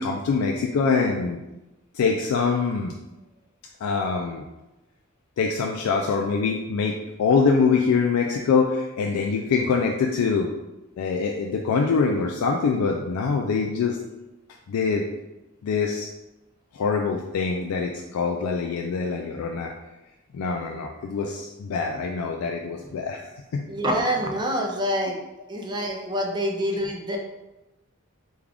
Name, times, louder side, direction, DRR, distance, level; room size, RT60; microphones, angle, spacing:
voice 1, 0.0-1.4 1.9-2.9 3.8-4.4 5.4-10.5 11.0-14.0 14.7-15.1 15.6-16.1 16.7-19.7 20.3-23.7 26.3-26.4, left 5 dB, 90° left, 1 dB, 0.3 m, -24 dB
voice 2, 23.7-25.2 25.5-27.2, equal, 20° right, 2 dB, 0.4 m, -26 dB
3.5 x 2.3 x 3.4 m, 1.0 s
head